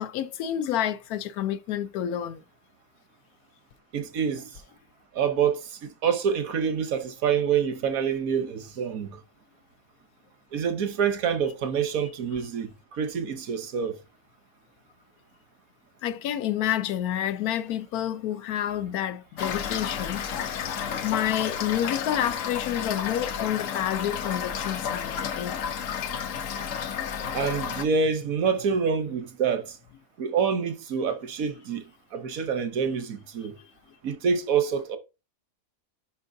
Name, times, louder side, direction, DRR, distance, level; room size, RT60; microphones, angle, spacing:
voice 1, 0.0-2.4 16.0-20.2 21.0-25.6, left 11 dB, 85° left, 1.1 m, -29 dB
voice 2, 3.9-4.5 5.1-9.2 10.5-14.0 27.3-29.8 30.2-31.8 32.1-33.5 34.0-35.0, right 6 dB, 70° right, 1.3 m, -27 dB
Toilet flush / Fill (with liquid), 19.4-27.8, left 7 dB, 65° left, 1.1 m, -31 dB
10.5 x 4.5 x 2.6 m
omnidirectional pair, 1.5 m